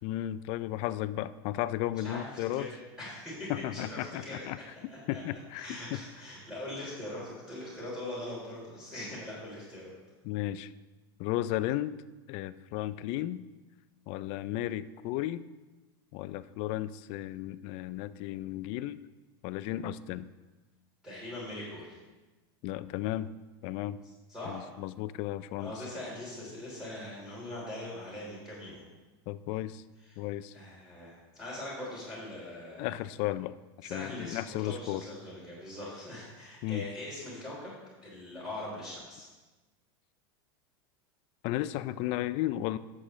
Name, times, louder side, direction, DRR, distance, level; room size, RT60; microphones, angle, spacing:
voice 1, 0.0-2.7 3.5-4.6 5.1-6.0 10.2-10.7 11.2-12.0 12.3-13.4 14.1-15.4 16.1-19.0 19.4-20.3 22.6-23.3 23.6-24.0 24.5-25.7 29.3-29.8 30.2-30.5 32.8-35.0 36.6-36.8 41.4-42.8, left 14 dB, 50° left, 15 dB, 0.4 m, -34 dB
voice 2, 2.0-4.5 4.9-9.9 21.0-22.0 24.3-24.7 25.6-28.8 30.0-30.2 30.5-33.0 33.8-37.7 38.0-39.3, left 1 dB, 5° right, -8 dB, 3.5 m, -41 dB
12.0 x 7.7 x 3.2 m, 1.2 s
supercardioid pair, 130°, 13 cm